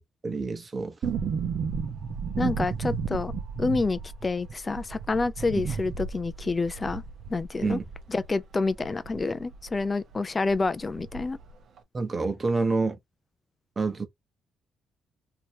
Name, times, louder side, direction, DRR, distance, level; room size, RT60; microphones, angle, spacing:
voice 1, 0.2-1.0 1.8-1.9 7.6-7.8 11.9-13.0 13.8-14.1, right 3 dB, 30° right, 1.0 m, -27 dB
sound 1, 1.0-9.9 10.1-10.2 10.5-11.5 11.8-11.9, right 6 dB, 65° right, 0.8 m, -34 dB
voice 2, 2.4-3.3 3.6-7.0 7.3-7.8 8.1-11.4, left 3 dB, 30° left, 0.5 m, -28 dB
3.2 x 2.9 x 2.7 m
cardioid pair, 90°, 0 cm